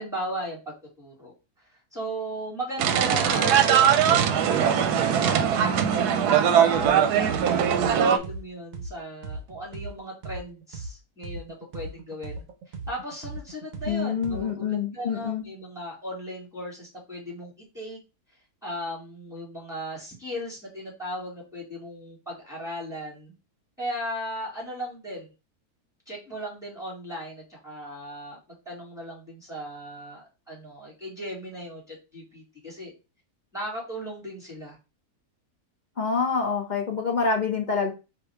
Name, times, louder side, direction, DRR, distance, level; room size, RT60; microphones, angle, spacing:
voice 1, 0.0-1.3 1.9-6.9 7.1-18.0 18.6-23.3 23.8-25.3 26.1-32.9 33.5-34.8, equal, ahead, -4 dB, 2.2 m, -37 dB
sound 1, 2.8-8.2, right 8 dB, 90° right, 1.1 m, -21 dB
sound 2, 6.7-6.9 7.2-10.9 11.2-14.7, right 3 dB, 65° right, 1.2 m, -37 dB
voice 2, 13.9-15.5 36.0-37.9, left 5 dB, 45° left, 0 dB, 0.6 m, -26 dB
4.0 x 2.8 x 4.4 m, 0.29 s
omnidirectional pair, 1.7 m